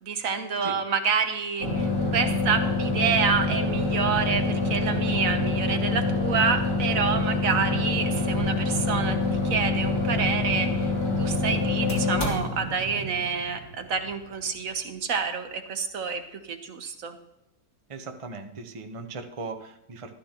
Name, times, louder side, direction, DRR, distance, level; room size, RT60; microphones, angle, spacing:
voice 1, 0.0-10.9 11.2-17.2, right 6 dB, 55° right, 7 dB, 1.3 m, -28 dB
sound 1, 1.6-14.2, left 2 dB, 55° left, 3.6 m, -26 dB
voice 2, 17.9-20.1, right 3 dB, 35° right, 5 dB, 0.5 m, -38 dB
13.0 x 13.0 x 2.9 m, 0.86 s
omnidirectional pair, 1.8 m